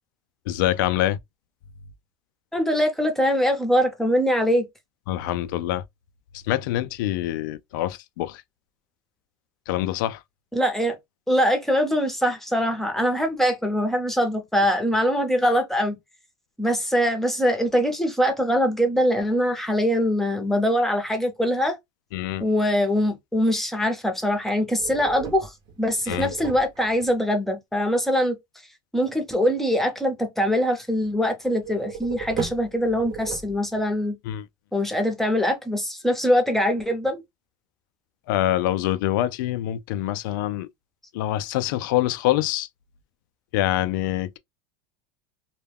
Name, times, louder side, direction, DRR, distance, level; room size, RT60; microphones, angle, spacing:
voice 1, 0.5-1.2 5.1-5.8 6.3-8.4 9.7-10.2 22.1-22.5 26.1-26.3 34.2-34.5 38.3-40.7 41.1-42.7 43.5-44.4, left 13 dB, 75° left, 0.4 m, -25 dB
voice 2, 2.5-4.7 10.5-11.0 11.3-16.0 16.6-21.8 22.4-25.5 25.8-28.4 28.9-34.2 34.7-37.2, equal, 5° left, 0.7 m, -23 dB
sound 1, 24.8-27.1 31.6-33.9, right 6 dB, 45° right, 0.8 m, -36 dB
2.2 x 2.2 x 3.3 m
supercardioid pair, 110°, 11 cm